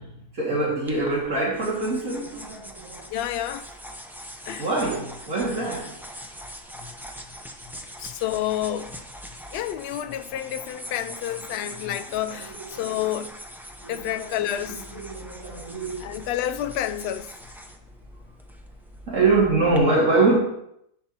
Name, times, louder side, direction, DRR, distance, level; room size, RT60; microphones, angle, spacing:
voice 1, 0.0-3.1 4.6-6.0 12.3-13.0 13.8-14.6 14.9-16.3 19.1-20.4, right 3 dB, 75° right, 2.5 m, -25 dB
sound 1, 0.9-19.8, equal, ahead, 0.5 m, -42 dB
voice 2, 3.1-3.7 4.4-4.6 6.8-6.9 8.0-9.0 9.5-13.4 13.9-14.9 16.0-17.3, left 12 dB, 65° left, 0.7 m, -29 dB
11.0 x 8.4 x 2.9 m
omnidirectional pair, 1.4 m